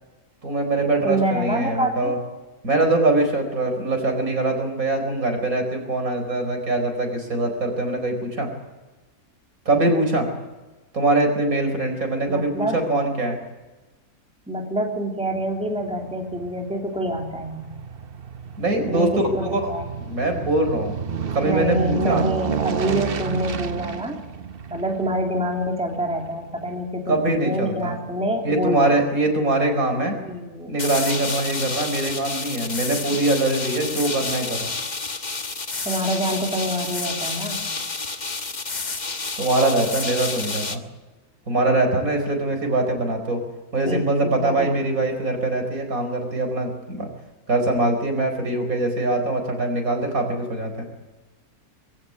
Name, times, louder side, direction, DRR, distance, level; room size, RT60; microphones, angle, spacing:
voice 1, 0.4-2.2 2.6-8.5 9.6-10.3 10.9-13.4 18.6-19.1 19.4-19.6 20.1-21.0 21.3-22.2 27.1-28.0 28.4-30.2 30.7-34.7 39.4-40.8 41.5-43.4 43.7-47.1 47.5-50.8, right 2 dB, 70° right, 4 dB, 5.0 m, -23 dB
voice 2, 1.0-2.1 12.3-12.8 14.5-17.6 18.9-19.1 19.3-19.9 21.4-24.2 24.7-27.2 27.4-29.0 30.2-30.8 35.8-37.7 43.8-44.7, equal, 5° right, 1 dB, 3.1 m, -26 dB
Aircraft, 15.3-27.8 28.3-28.4, right 7 dB, 45° right, 1.0 m, -31 dB
sound 1, 30.8-40.8, left 4 dB, 30° left, 1.4 m, -30 dB
22.0 x 16.0 x 9.6 m, 1.2 s
omnidirectional pair, 1.5 m